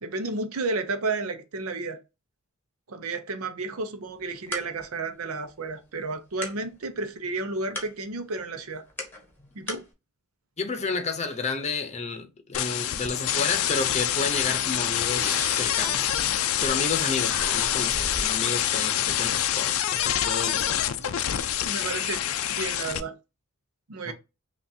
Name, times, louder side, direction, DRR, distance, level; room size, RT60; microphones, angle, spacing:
voice 1, 0.0-2.0 2.9-8.9 9.5-9.9 21.6-23.2 23.9-24.1, right 3 dB, 75° right, 0.7 m, -32 dB
sound 1, 4.1-9.9, left 1 dB, 10° left, 1.1 m, -42 dB
voice 2, 10.6-16.2 16.6-21.2 24.1-24.2, left 4 dB, 30° left, 0.8 m, -31 dB
sound 2, 12.5-23.0, left 11 dB, 70° left, 0.4 m, -26 dB
Breathing, 15.0-17.0 17.2-18.3, equal, 10° right, 1.4 m, -37 dB
5.8 x 2.5 x 2.7 m
head